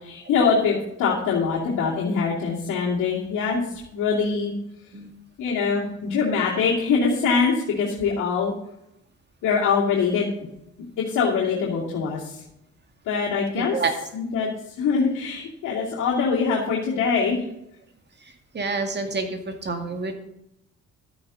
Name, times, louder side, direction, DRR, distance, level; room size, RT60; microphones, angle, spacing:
voice 1, 0.0-3.6 3.9-4.5 5.4-8.5 9.4-10.3 11.0-12.4 13.1-13.8 14.1-14.5 14.8-17.4, left 5 dB, 85° left, -7 dB, 2.7 m, -23 dB
voice 2, 13.5-13.9 18.5-20.1, right 4 dB, 35° right, 5 dB, 2.2 m, -28 dB
12.5 x 9.3 x 4.0 m, 0.79 s
cardioid pair, 90°, 30 cm